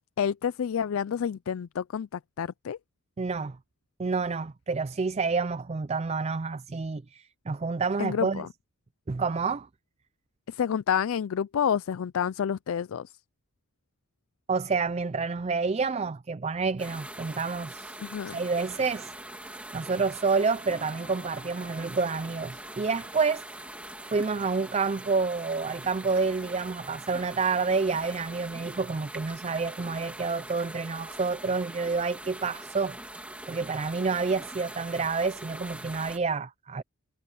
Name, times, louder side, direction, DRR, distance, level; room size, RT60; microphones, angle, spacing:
voice 1, 0.0-2.8 8.0-8.5 10.5-13.1 18.0-18.4, left 8 dB, 75° left, 0.4 m, -29 dB
voice 2, 3.2-3.6 4.0-8.5 9.1-9.7 14.5-18.0 18.3-19.1 19.7-23.4 24.0-33.0 33.5-36.8, right 4 dB, 30° right, 0.4 m, -29 dB
sound 1, 16.8-36.2, right 1 dB, 5° right, 2.5 m, -43 dB
sound 2, 20.7-29.2, left 2 dB, 25° left, 3.7 m, -56 dB
head